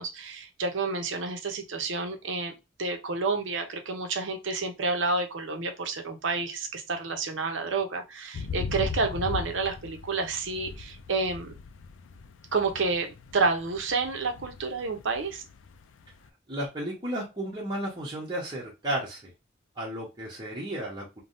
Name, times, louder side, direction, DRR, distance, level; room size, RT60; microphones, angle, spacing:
voice 1, 0.0-2.5 2.8-11.6 12.5-15.4, right 3 dB, 75° right, 5 dB, 0.7 m, -29 dB
sound 1, 8.3-16.3, left 5 dB, 75° left, 0.4 m, -39 dB
voice 2, 16.5-19.3 19.8-21.2, right 1 dB, 25° right, -5 dB, 0.9 m, -33 dB
3.3 x 2.2 x 2.6 m, 0.26 s
head